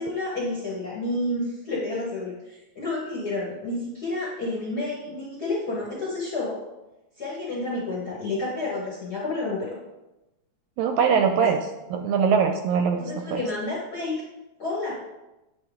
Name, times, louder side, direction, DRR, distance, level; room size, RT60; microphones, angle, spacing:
voice 1, 0.0-6.6 7.2-9.7 11.4-11.5 13.0-14.2 14.6-15.0, left 2 dB, 50° left, -6 dB, 1.1 m, -30 dB
voice 2, 10.8-11.6 11.9-13.4, right 6 dB, 80° right, 5 dB, 1.7 m, -22 dB
8.3 x 4.5 x 3.6 m, 0.99 s
omnidirectional pair, 3.5 m